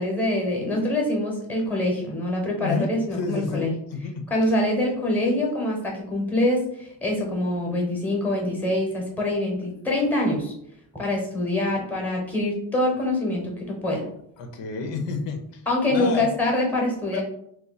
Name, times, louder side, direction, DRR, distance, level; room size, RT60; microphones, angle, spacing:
voice 1, 0.0-3.7 4.3-10.5 10.9-14.0 15.7-17.2, left 1 dB, 5° left, -1 dB, 0.8 m, -25 dB
voice 2, 2.6-4.2 14.4-15.6 15.9-16.3 17.1-17.2, left 4 dB, 85° left, 6 dB, 0.7 m, -30 dB
2.8 x 2.2 x 3.9 m, 0.72 s
cardioid pair, 150°, 43 cm